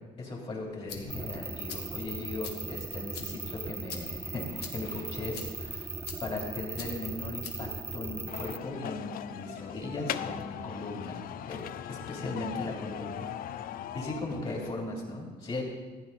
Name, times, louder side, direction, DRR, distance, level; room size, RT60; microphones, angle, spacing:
voice 1, 0.2-5.9 6.2-11.2 11.4-11.6 11.9-13.2 13.9-15.6, left 2 dB, 35° left, -1 dB, 3.2 m, -37 dB
sound 1, 0.6-8.6, left 5 dB, 75° left, 1.6 m, -47 dB
sound 2, 1.1-8.6, right 3 dB, 15° right, 0.3 m, -39 dB
sound 3, 8.3-14.7, left 10 dB, 60° left, 0.5 m, -39 dB
14.5 x 9.5 x 4.1 m, 1.4 s
cardioid pair, 110°, 17 cm